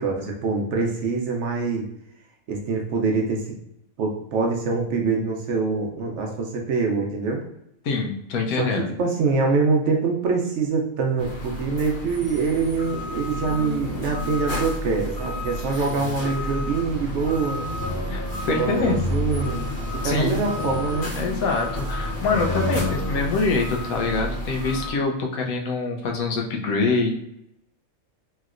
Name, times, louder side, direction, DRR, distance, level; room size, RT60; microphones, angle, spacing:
voice 1, 0.0-1.9 2.5-3.5 4.0-7.4 8.6-17.6 18.5-19.7 19.9-21.2, right 4 dB, 65° right, 1 dB, 0.8 m, -24 dB
voice 2, 7.8-8.9 18.1-19.1 20.0-20.4 21.1-27.2, left 4 dB, 85° left, 2 dB, 1.1 m, -25 dB
sound 1, 11.2-24.9, left 1 dB, 45° left, 0.8 m, -30 dB
3.1 x 2.8 x 2.4 m, 0.79 s
omnidirectional pair, 1.5 m